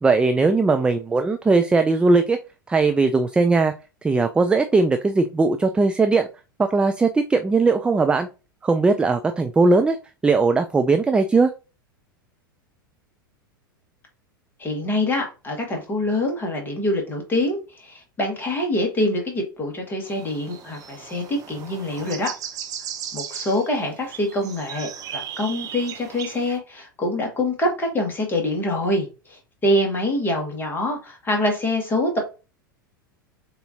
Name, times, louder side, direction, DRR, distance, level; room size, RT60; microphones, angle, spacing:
voice 1, 0.0-2.4 2.7-3.7 4.0-6.3 6.6-8.3 8.6-10.0 10.2-11.5, right 3 dB, 10° right, 0.3 m, -19 dB
voice 2, 14.6-22.3 23.1-32.2, left 1 dB, 20° left, 1.7 m, -25 dB
sound 1, 20.1-26.6, right 9 dB, 30° right, 0.8 m, -37 dB
6.7 x 2.8 x 2.7 m
figure-of-eight pair, 85°, 12 cm